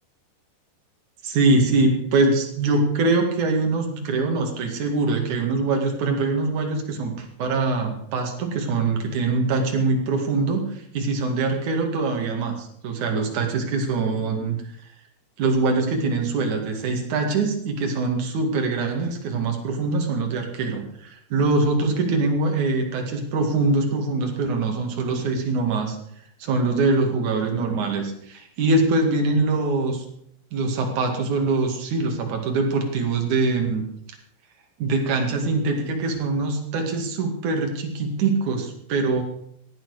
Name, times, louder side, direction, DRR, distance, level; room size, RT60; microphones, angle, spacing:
voice 1, 1.2-14.6 15.4-26.0 26.4-30.0 30.5-33.9 34.8-39.2, right 3 dB, 50° right, 3 dB, 3.2 m, -23 dB
16.5 x 10.5 x 5.0 m, 0.70 s
omnidirectional pair, 5.1 m